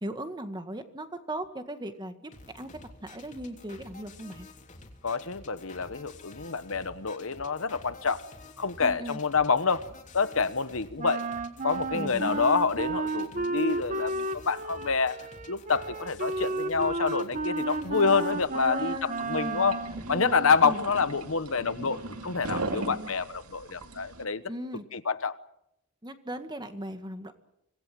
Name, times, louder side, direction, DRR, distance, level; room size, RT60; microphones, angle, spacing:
voice 1, 0.0-2.7 3.0-4.5 8.8-9.2 11.9-12.5 17.6-18.2 18.5-19.6 20.1-20.8 22.7-23.1 24.5-24.8 26.0-27.3, right 1 dB, 20° right, 8 dB, 1.8 m, -38 dB
sound 1, 2.3-18.3, left 2 dB, 35° left, 3.1 m, -50 dB
voice 2, 5.0-8.2 8.6-9.8 10.1-11.2 11.6-15.2 15.5-19.8 20.1-24.4 24.9-25.4, left 5 dB, 65° left, 13 dB, 1.1 m, -27 dB
Wind instrument woodwind instrument, 11.0-20.0, right 3 dB, 35° right, 1.3 m, -32 dB
sound 2, 18.3-24.2, right 2 dB, 85° right, 2.4 m, -39 dB
26.0 x 19.0 x 7.8 m, 0.79 s
head